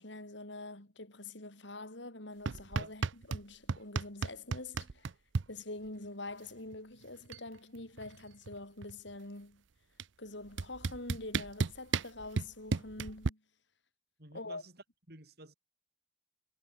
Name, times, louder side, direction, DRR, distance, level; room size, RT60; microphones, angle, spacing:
voice 1, 0.0-5.1 5.5-9.6 10.2-13.4 14.3-14.6, left 2 dB, 65° left, 4.3 m, -45 dB
sound 1, 2.5-3.4 3.7-5.5 6.7-6.8 7.1-7.5 7.8-9.1 10.0-10.1 10.6-13.3, right 4 dB, 70° right, 0.6 m, -34 dB
voice 2, 14.2-15.5, right 1 dB, 50° right, 7.1 m, -53 dB
head